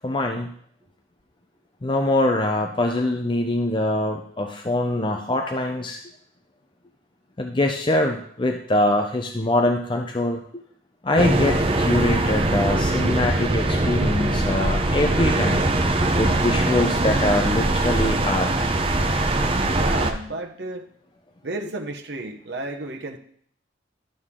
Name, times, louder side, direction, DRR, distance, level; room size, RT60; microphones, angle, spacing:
voice 1, 0.0-0.5 1.8-6.0 7.4-10.6 11.0-15.7 16.1-18.5, left 1 dB, 25° left, 3 dB, 0.5 m, -23 dB
sound 1, 11.2-20.1, right 2 dB, 30° right, 0.7 m, -22 dB
voice 2, 19.7-20.9 21.4-23.2, right 2 dB, 65° right, 3 dB, 0.9 m, -32 dB
11.5 x 6.4 x 3.7 m, 0.63 s
head